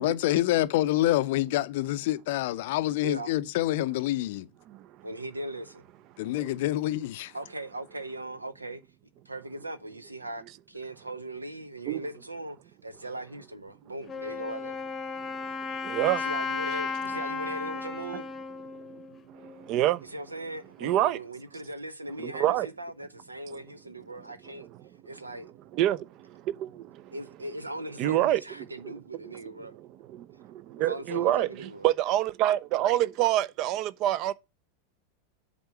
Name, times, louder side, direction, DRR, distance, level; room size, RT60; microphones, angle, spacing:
voice 1, 0.0-4.5 6.2-7.3, left 15 dB, 50° left, 0.5 m, -27 dB
voice 2, 5.0-5.9 7.3-8.8 9.3-12.6 12.8-14.8 16.2-18.3 20.0-24.7 25.1-25.5 27.1-29.8 30.8-31.9, right 1 dB, 80° right, 0.8 m, -39 dB
Wind instrument woodwind instrument, 14.1-19.8, left 4 dB, 20° left, 0.9 m, -35 dB
voice 3, 15.8-16.2 19.7-20.0 20.8-21.2 22.2-22.7 25.7-26.0 28.0-28.4 28.8-29.0 30.8-31.5 31.8-34.3, right 13 dB, 40° right, 0.5 m, -25 dB
8.0 x 3.7 x 6.6 m
figure-of-eight pair, 90°, 0 cm